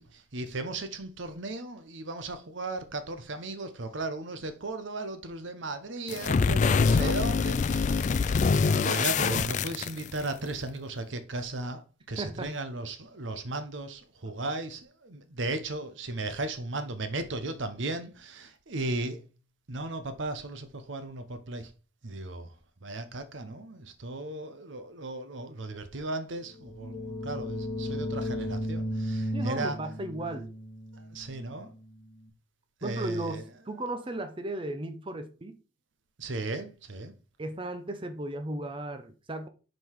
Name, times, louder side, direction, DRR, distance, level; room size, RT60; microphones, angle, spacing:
voice 1, 0.0-8.4 8.7-19.3 19.7-21.7 22.0-22.5 22.8-29.8 30.9-31.7 32.8-33.4 36.2-37.1, right 2 dB, 75° right, 0.9 m, -36 dB
sound 1, 6.1-10.3, left 5 dB, 40° left, 0.3 m, -25 dB
voice 2, 12.2-12.5 29.3-30.5 32.8-35.6 37.4-39.5, right 1 dB, 25° right, 0.7 m, -35 dB
sound 2, 26.5-32.1, equal, 10° left, 2.4 m, -35 dB
5.7 x 5.1 x 4.7 m
head